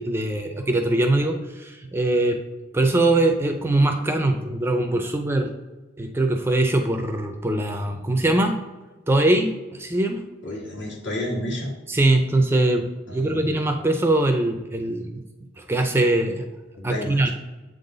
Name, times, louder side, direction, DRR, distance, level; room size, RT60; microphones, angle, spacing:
voice 1, 0.0-2.4 2.7-5.5 6.0-8.5 9.1-10.2 11.9-15.1 15.6-16.5 16.8-17.3, right 2 dB, 10° right, 5 dB, 0.4 m, -22 dB
voice 2, 10.4-11.7 13.1-13.6 16.8-17.3, left 1 dB, 70° left, -3 dB, 1.9 m, -31 dB
7.6 x 3.9 x 3.8 m, 1.2 s
head